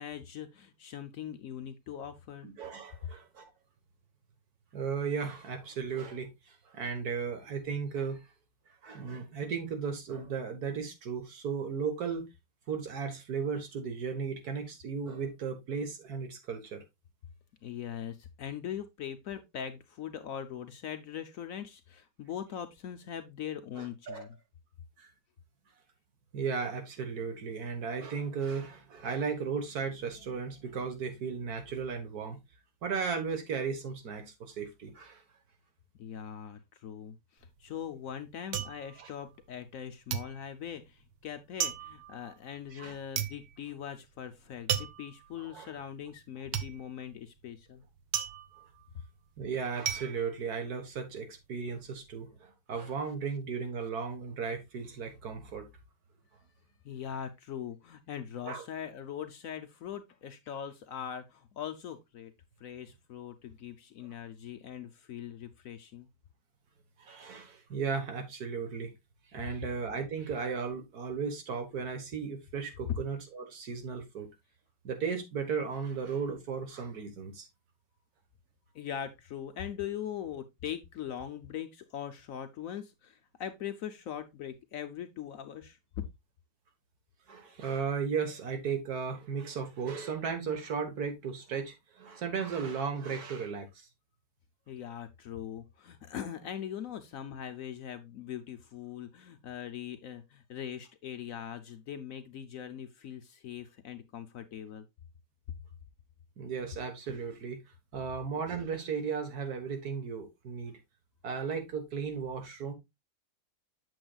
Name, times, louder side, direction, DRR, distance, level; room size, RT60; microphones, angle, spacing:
voice 1, 0.0-2.5 17.6-24.4 36.0-47.8 56.8-62.3 62.6-66.1 72.9-73.0 78.7-85.8 94.7-104.9, left 9 dB, 65° left, 0.9 m, -41 dB
voice 2, 2.4-3.5 4.7-6.3 6.7-8.2 8.8-12.3 12.7-16.8 23.8-24.2 25.0-25.1 26.3-32.4 32.8-35.2 39.0-39.1 42.7-42.9 45.5-45.7 49.4-55.7 58.5-58.6 67.0-68.9 69.3-74.3 74.8-77.5 87.3-93.9 106.4-107.6 107.9-110.7 111.2-112.7, right 6 dB, 65° right, 1.8 m, -35 dB
sound 1, 37.4-39.8 40.1-51.2 51.5-52.1, right 9 dB, 90° right, 1.3 m, -37 dB
7.8 x 7.1 x 2.3 m
omnidirectional pair, 1.8 m